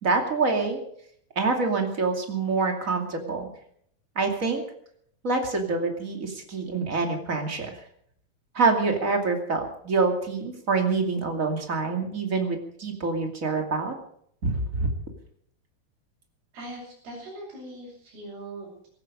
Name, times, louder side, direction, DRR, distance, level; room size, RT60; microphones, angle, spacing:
voice 1, 0.0-0.8 1.4-3.5 4.2-4.6 5.2-7.8 8.5-13.9 14.4-14.9, right 4 dB, 25° right, 3 dB, 2.3 m, -26 dB
voice 2, 16.5-18.9, right 1 dB, 85° right, -7 dB, 8.2 m, -41 dB
17.5 x 15.0 x 5.2 m, 0.66 s
omnidirectional pair, 4.3 m